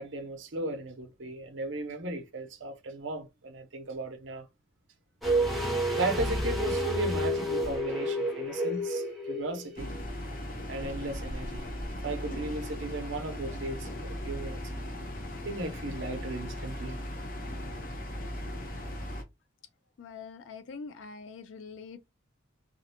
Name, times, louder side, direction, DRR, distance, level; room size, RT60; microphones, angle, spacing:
voice 1, 0.0-4.5 6.0-9.9 10.7-11.7 12.0-14.6 15.4-17.0 17.7-17.8, right 2 dB, 75° right, 0.7 m, -36 dB
sound 1, 5.2-10.1 10.3-10.4, equal, ahead, 0.6 m, -30 dB
sound 2, 9.8-19.2, left 1 dB, 45° left, 0.7 m, -38 dB
voice 2, 20.0-22.1, left 5 dB, 75° left, 0.4 m, -44 dB
2.5 x 2.1 x 2.8 m
head